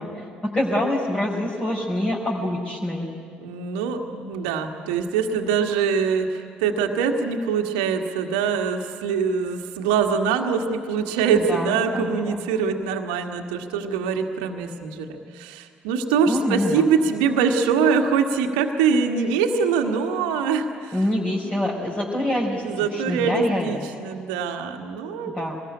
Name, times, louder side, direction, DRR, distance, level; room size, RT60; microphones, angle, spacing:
voice 1, 0.0-3.1 11.3-12.4 16.3-16.9 20.9-22.6 22.9-23.9 25.3-25.6, left 1 dB, 20° left, -4 dB, 4.5 m, -26 dB
voice 2, 3.4-15.1 15.3-21.0 21.4-21.6 22.6-25.3, right 6 dB, 65° right, 5 dB, 1.5 m, -23 dB
24.0 x 20.5 x 10.0 m, 2.2 s
figure-of-eight pair, 50°, 5 cm